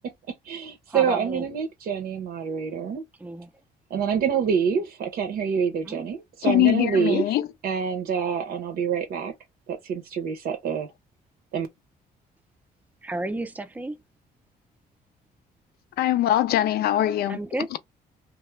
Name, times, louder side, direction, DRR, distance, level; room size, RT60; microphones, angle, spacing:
voice 1, 0.3-3.0 3.9-7.2 7.6-9.3 9.7-10.9 11.5-11.7, right 7 dB, 65° right, 0.7 m, -26 dB
voice 2, 0.9-1.5 3.2-3.5 5.9-6.1 13.0-14.0 17.3-17.8, right 2 dB, 10° right, 0.4 m, -32 dB
voice 3, 6.4-7.4 16.0-17.4 17.7-17.8, left 13 dB, 70° left, 0.4 m, -22 dB
2.3 x 2.0 x 3.0 m
cardioid pair, 110°, 17 cm